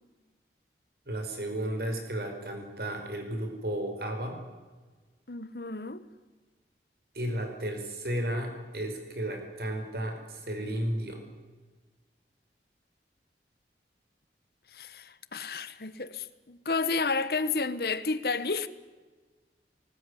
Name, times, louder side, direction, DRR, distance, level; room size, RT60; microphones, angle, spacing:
voice 1, 1.1-4.4 7.1-11.2, right 1 dB, 60° right, 5.0 m, -33 dB
voice 2, 5.3-6.0 14.7-18.7, left 4 dB, 60° left, 1.1 m, -31 dB
20.0 x 19.0 x 9.8 m
head